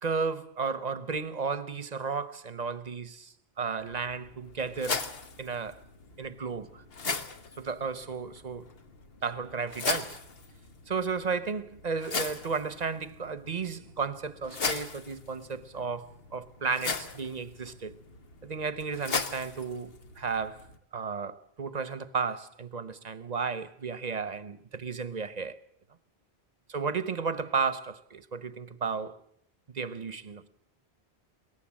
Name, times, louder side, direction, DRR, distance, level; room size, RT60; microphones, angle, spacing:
voice 1, 0.0-5.0 5.4-5.8 6.2-6.8 7.6-8.7 9.2-10.2 10.9-17.9 18.4-20.7 20.9-25.6 26.7-29.2 29.7-30.5, right 5 dB, 45° right, 1.0 m, -33 dB
sound 1, 3.8-20.8, left 4 dB, 70° left, 1.5 m, -38 dB
22.0 x 18.5 x 7.6 m
omnidirectional pair, 1.0 m